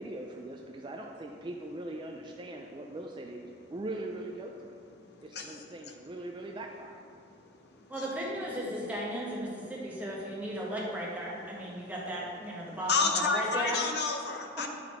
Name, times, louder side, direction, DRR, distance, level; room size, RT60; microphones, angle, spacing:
voice 1, 0.0-4.8 5.2-7.0, right 1 dB, 25° right, 2 dB, 0.3 m, -41 dB
voice 2, 5.0-5.7 7.2-8.1 11.8-11.9 12.9-14.7, left 4 dB, 60° left, 4 dB, 0.6 m, -31 dB
voice 3, 7.9-13.8, right 1 dB, 10° right, -5 dB, 1.2 m, -36 dB
9.9 x 4.1 x 4.3 m, 2.4 s
head